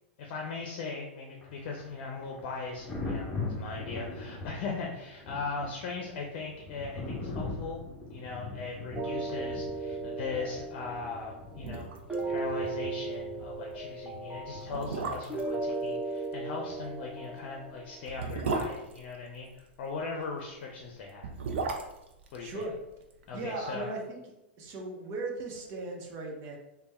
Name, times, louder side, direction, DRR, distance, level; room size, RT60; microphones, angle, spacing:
voice 1, 0.2-3.3 3.6-7.8 8.1-11.8 12.3-21.3 22.3-22.6 23.3-23.9, left 4 dB, 55° left, 0 dB, 0.6 m, -39 dB
Thunder, 1.4-15.1 16.7-16.9, left 3 dB, 10° left, 1.0 m, -41 dB
sound 1, 8.9-18.1, right 2 dB, 10° right, 0.7 m, -36 dB
sound 2, 11.2-11.3 11.5-12.2 12.5-12.6 13.0-13.2 13.9-14.0 14.6-15.5 17.1-19.7 21.0-23.2 23.5-23.6, right 4 dB, 75° right, 0.6 m, -35 dB
voice 2, 22.4-22.7 23.3-24.2 24.6-26.6, right 3 dB, 40° right, 0 dB, 1.0 m, -37 dB
3.4 x 2.3 x 4.2 m, 0.93 s
hypercardioid pair, 115°, 6 cm